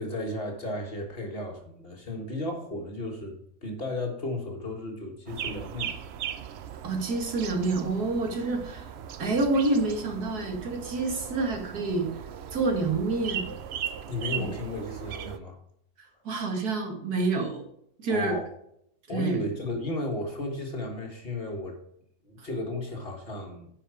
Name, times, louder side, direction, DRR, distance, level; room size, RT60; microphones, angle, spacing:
voice 1, 0.0-6.0 14.1-15.6 18.1-18.5 19.1-21.8 22.2-23.7, left 1 dB, 40° left, 2 dB, 1.8 m, -34 dB
sound 1, 5.3-15.4, right 9 dB, 60° right, 0.7 m, -38 dB
voice 2, 6.8-8.9 9.2-12.1 12.5-13.5 14.4-14.5 16.2-17.6 18.0-18.4 19.1-19.4 22.4-22.5, right 3 dB, 75° right, 3 dB, 2.3 m, -28 dB
10.0 x 5.1 x 4.8 m, 0.72 s
omnidirectional pair, 1.7 m